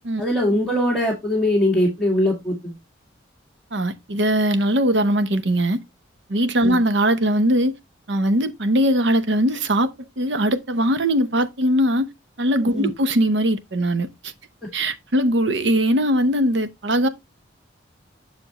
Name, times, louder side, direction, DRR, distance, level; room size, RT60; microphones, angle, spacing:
voice 1, 0.2-2.7 6.6-6.8 12.7-12.9 14.6-14.7, left 1 dB, ahead, 1.9 m, -21 dB
voice 2, 3.7-5.8 6.3-7.7 8.1-12.1 12.4-14.3 14.7-17.1, equal, 65° right, 0.8 m, -20 dB
7.0 x 6.8 x 2.9 m
head